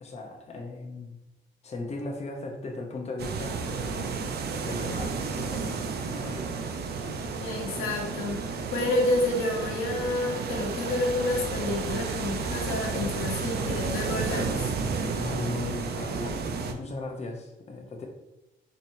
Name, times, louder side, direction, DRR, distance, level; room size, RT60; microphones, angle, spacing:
voice 1, 0.0-1.2 1.6-4.2 4.6-6.5 7.0-7.2 7.8-7.9 15.2-18.1, left 2 dB, 35° left, 1 dB, 0.7 m, -37 dB
sound 1, 3.2-16.7, right 5 dB, 55° right, 0.5 m, -32 dB
voice 2, 7.4-14.7, left 2 dB, 90° left, 0 dB, 1.0 m, -29 dB
4.3 x 3.0 x 2.6 m, 0.95 s
cardioid pair, 90°, 20 cm